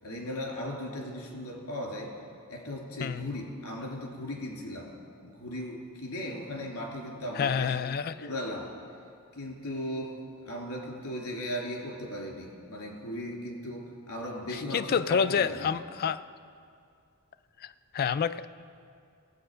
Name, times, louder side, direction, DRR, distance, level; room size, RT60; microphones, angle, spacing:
voice 1, 0.0-2.1 2.5-4.9 5.2-7.8 8.2-8.7 9.3-10.2 10.4-15.7, left 1 dB, 80° left, -1 dB, 2.8 m, -37 dB
voice 2, 7.3-8.3 14.5-16.2 17.6-18.5, left 7 dB, 45° left, 13 dB, 0.3 m, -29 dB
17.0 x 7.8 x 5.1 m, 2.3 s
head